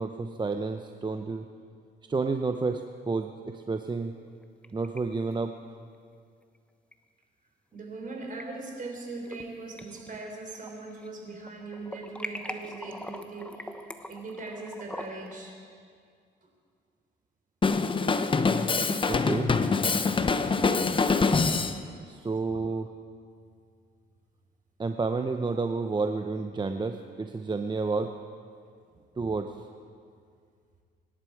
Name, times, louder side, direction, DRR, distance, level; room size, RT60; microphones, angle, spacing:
voice 1, 0.0-1.5 2.1-4.1 4.7-5.5 19.1-19.5 22.1-22.9 24.8-28.1 29.2-29.7, right 4 dB, 20° right, 6 dB, 0.7 m, -30 dB
sound 1, 4.3-5.0 5.3-5.4 6.9-7.0 8.1-8.4 9.0-9.5 9.8-11.1 11.4-15.4, left 1 dB, 5° left, 1.1 m, -42 dB
voice 2, 7.7-15.6, right 3 dB, 40° right, 1 dB, 4.0 m, -40 dB
Drum kit, 17.6-21.8, left 4 dB, 25° left, 0.7 m, -24 dB
25.0 x 11.5 x 4.8 m, 2.2 s
cardioid pair, 90°, 20 cm